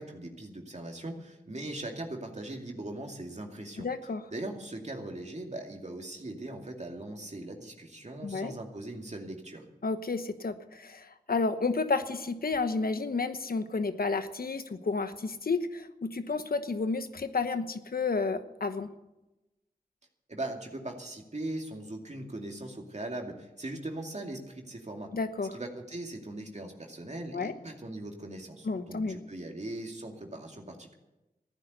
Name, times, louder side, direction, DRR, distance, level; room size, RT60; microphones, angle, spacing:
voice 1, 0.0-3.9 4.3-9.6 20.3-25.1 25.5-30.9, right 1 dB, 45° right, 2 dB, 2.4 m, -40 dB
voice 2, 3.8-4.2 8.2-8.5 9.8-18.9 25.1-25.5 27.3-27.5 28.6-29.2, left 4 dB, 75° left, 10 dB, 1.1 m, -31 dB
15.0 x 10.0 x 8.1 m, 0.98 s
cardioid pair, 40°, 16 cm